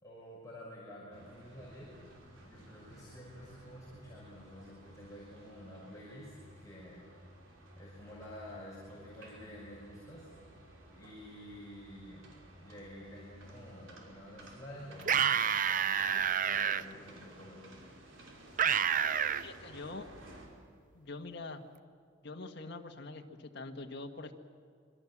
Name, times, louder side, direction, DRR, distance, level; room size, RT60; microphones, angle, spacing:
voice 1, 0.0-1.9 2.4-7.2 7.8-10.3 10.9-17.7, equal, 15° left, -6 dB, 5.9 m, -50 dB
sound 1, 1.1-20.5, right 1 dB, 80° right, 5.5 m, -55 dB
sound 2, 15.0-16.8 18.6-19.4, right 8 dB, 40° right, 0.6 m, -28 dB
voice 2, 19.4-20.1 20.9-21.6 22.2-24.3, left 3 dB, 55° left, 4 dB, 1.9 m, -44 dB
26.0 x 24.0 x 7.5 m, 2.2 s
head